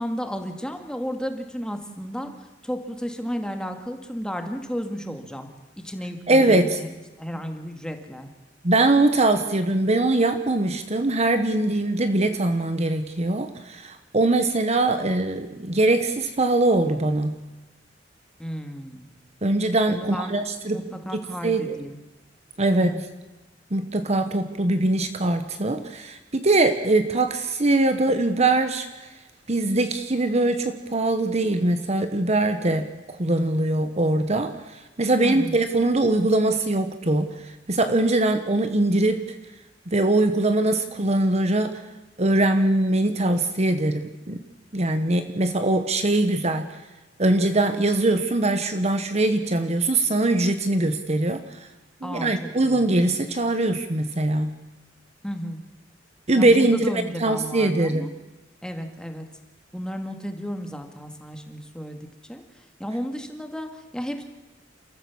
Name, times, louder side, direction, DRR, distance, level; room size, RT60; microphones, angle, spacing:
voice 1, 0.0-2.3 2.6-5.5 5.8-6.9 7.2-8.3 18.4-19.1 19.9-20.3 20.7-22.0 22.7-23.0 35.2-35.6 52.0-52.3 52.6-52.9 55.2-55.6 56.4-58.1 58.6-59.3 59.7-62.0 62.3-62.4 62.8-64.2, equal, 5° left, 5 dB, 2.1 m, -33 dB
voice 2, 6.3-6.7 7.3-7.4 8.6-17.4 19.4-20.8 21.4-21.8 22.6-22.9 23.7-28.9 29.5-39.3 39.9-41.7 42.2-44.4 44.7-46.7 47.2-51.4 52.0-54.5 56.3-58.1, right 2 dB, 35° right, 9 dB, 1.2 m, -22 dB
29.0 x 14.0 x 7.3 m, 1.1 s
head